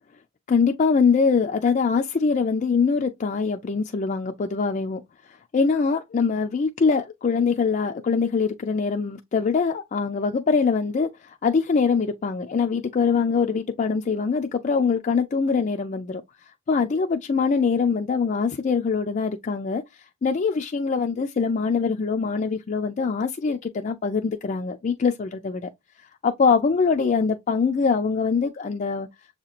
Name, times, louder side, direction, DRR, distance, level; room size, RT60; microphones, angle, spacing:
voice 1, 0.5-5.0 5.5-16.2 16.7-19.8 20.2-25.7 26.2-29.1, left 5 dB, 35° left, 0.3 m, -23 dB
6.6 x 2.9 x 2.4 m
head